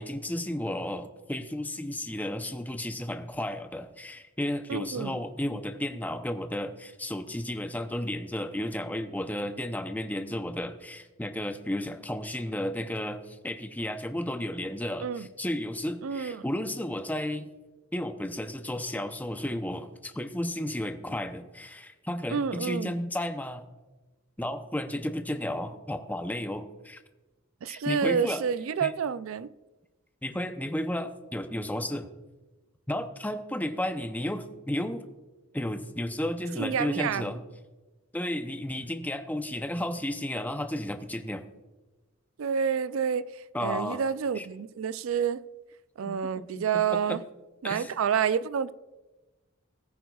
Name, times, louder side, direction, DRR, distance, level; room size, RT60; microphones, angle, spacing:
voice 1, 0.0-17.5 17.9-23.7 24.4-27.0 27.7-28.4 28.8-28.9 30.2-32.1 32.9-35.0 35.5-37.4 38.1-41.4 43.5-44.0 44.4-44.5 46.1-47.2 47.6-47.9, left 1 dB, 10° left, 0.6 m, -33 dB
voice 2, 4.7-5.2 15.0-15.3 16.0-16.5 22.3-22.9 27.6-29.5 36.6-37.3 42.4-45.4 46.0-47.2 47.6-48.7, right 7 dB, 75° right, 0.4 m, -29 dB
19.0 x 9.2 x 2.4 m
head